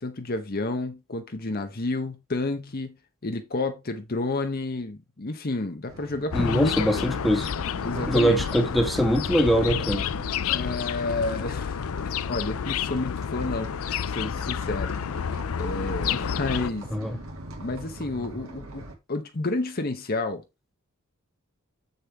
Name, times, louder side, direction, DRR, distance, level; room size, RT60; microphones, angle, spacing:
voice 1, 0.0-3.0 3.2-7.1 7.8-8.4 10.5-11.8 12.3-14.9 15.6-16.9 17.6-20.4, left 2 dB, 45° left, 0.9 m, -30 dB
sound 1, 5.9-19.0, right 1 dB, 80° right, 2.5 m, -43 dB
sound 2, 6.3-16.7, left 7 dB, 75° left, 0.5 m, -30 dB
voice 2, 6.3-7.5 8.1-10.1 16.9-17.2, equal, ahead, 1.5 m, -23 dB
7.6 x 6.7 x 3.5 m
head